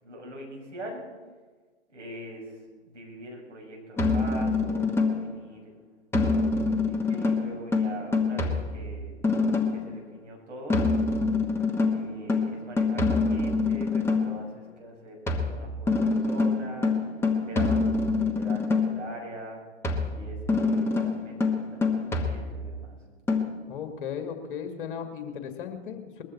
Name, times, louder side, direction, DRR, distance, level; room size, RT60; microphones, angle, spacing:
voice 1, 0.0-1.0 1.9-2.6 2.9-5.7 6.3-6.6 6.8-9.1 9.7-10.8 11.8-16.9 17.4-19.6 20.1-23.0, right 1 dB, 75° right, -1 dB, 5.7 m, -42 dB
sound 1, 4.0-5.4 6.1-9.9 10.7-14.4 15.3-19.1 19.8-22.8 23.3-23.4, left 3 dB, 5° left, 1.2 m, -25 dB
voice 2, 23.7-26.2, left 7 dB, 45° left, 6 dB, 2.1 m, -36 dB
21.0 x 14.0 x 4.3 m, 1.4 s
figure-of-eight pair, 120°, 36 cm